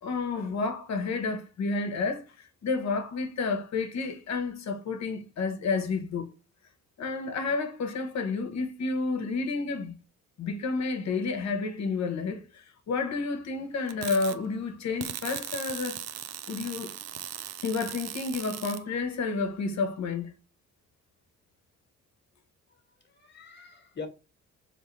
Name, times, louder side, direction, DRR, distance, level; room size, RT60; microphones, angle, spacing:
voice 1, 0.0-6.3 7.0-9.9 10.4-16.0 16.5-16.9 17.6-20.3, left 4 dB, 65° left, 1.2 m, -30 dB
sound 1, 13.9-14.4 15.0-18.8, right 11 dB, 60° right, 0.5 m, -38 dB
voice 2, 22.7-24.1, left 5 dB, 35° left, 1.5 m, -43 dB
4.1 x 3.3 x 3.1 m
cardioid pair, 90°, 30 cm